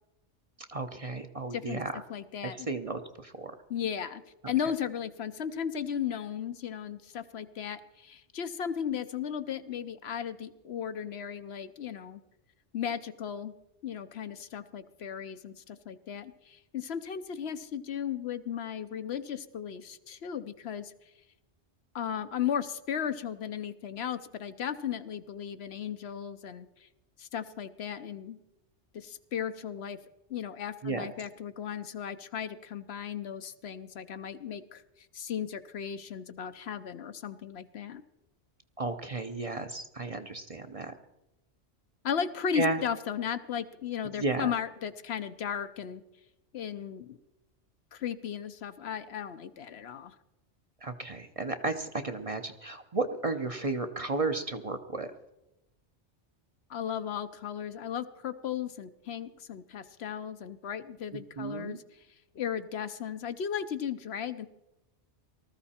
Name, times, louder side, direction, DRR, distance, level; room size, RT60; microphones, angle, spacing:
voice 1, 0.7-1.9 2.4-3.5 30.8-31.1 38.8-40.9 42.5-42.8 44.2-44.5 50.8-55.1 61.4-61.8, right 3 dB, 35° right, 7 dB, 0.8 m, -33 dB
voice 2, 1.5-1.8 2.1-2.7 3.7-4.2 4.5-12.2 12.7-13.5 13.8-20.9 21.9-26.9 27.2-28.4 28.9-30.0 30.3-38.0 42.0-46.0 46.5-47.2 47.9-50.2 56.7-62.1 62.3-64.5, left 8 dB, 65° left, 11 dB, 0.9 m, -36 dB
19.0 x 13.5 x 4.3 m, 0.93 s
omnidirectional pair, 1.2 m